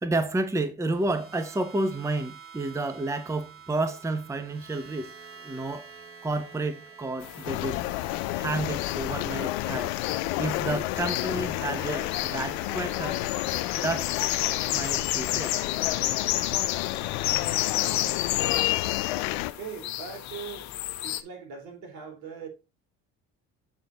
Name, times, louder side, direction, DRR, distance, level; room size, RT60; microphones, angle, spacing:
voice 1, 0.0-5.1 5.4-5.9 6.2-8.0 8.4-9.9 10.4-13.2 13.7-14.2 14.7-15.6, right 2 dB, 10° right, 0.8 m, -30 dB
sound 1, 0.8-19.0, right 5 dB, 45° right, 2.2 m, -50 dB
sound 2, 7.2-21.2, left 14 dB, 65° left, 0.9 m, -32 dB
sound 3, 7.4-19.5, left 17 dB, 85° left, 0.6 m, -30 dB
voice 2, 19.6-20.7 21.0-22.5, right 6 dB, 65° right, 3.6 m, -40 dB
8.1 x 4.2 x 3.9 m
supercardioid pair, 85°, 31 cm